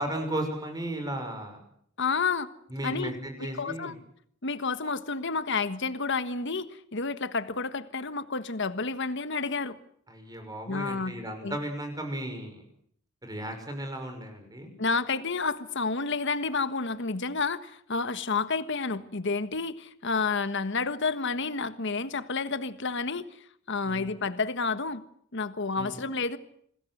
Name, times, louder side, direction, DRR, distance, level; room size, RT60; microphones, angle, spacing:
voice 1, 0.0-1.6 2.7-4.0 10.1-12.6 13.2-14.7 23.8-24.1 25.8-26.0, right 1 dB, 20° right, 6 dB, 6.1 m, -35 dB
voice 2, 2.0-2.5 2.8-3.1 3.4-3.9 4.4-9.8 10.7-11.1 11.4-11.6 14.8-23.3 23.7-25.0 25.3-26.4, left 4 dB, 60° left, 12 dB, 1.5 m, -30 dB
27.5 x 20.5 x 8.0 m, 0.67 s
head